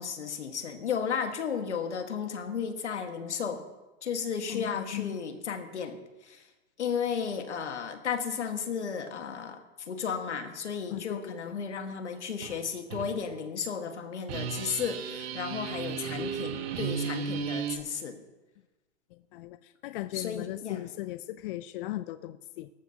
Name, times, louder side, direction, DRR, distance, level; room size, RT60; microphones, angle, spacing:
voice 1, 0.0-3.6 4.0-6.5 6.8-18.2 20.1-20.8, left 6 dB, 85° left, 7 dB, 1.7 m, -34 dB
voice 2, 4.5-5.2 10.9-11.3 19.1-22.7, left 16 dB, 50° left, 13 dB, 0.5 m, -38 dB
sound 1, 12.4-12.6 12.9-13.1 14.3-17.8, right 6 dB, 65° right, 1.5 m, -34 dB
18.5 x 13.5 x 2.9 m, 1.1 s
hypercardioid pair, 115°, 34 cm